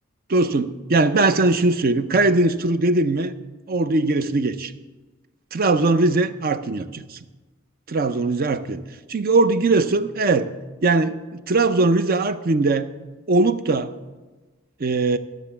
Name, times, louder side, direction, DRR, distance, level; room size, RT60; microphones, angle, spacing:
voice 1, 0.3-3.3 3.7-4.7 5.5-7.2 7.9-8.8 9.1-10.5 10.8-12.9 13.3-13.9 14.8-15.2, right 3 dB, 45° right, 12 dB, 0.6 m, -20 dB
12.0 x 6.8 x 7.0 m, 1.2 s
head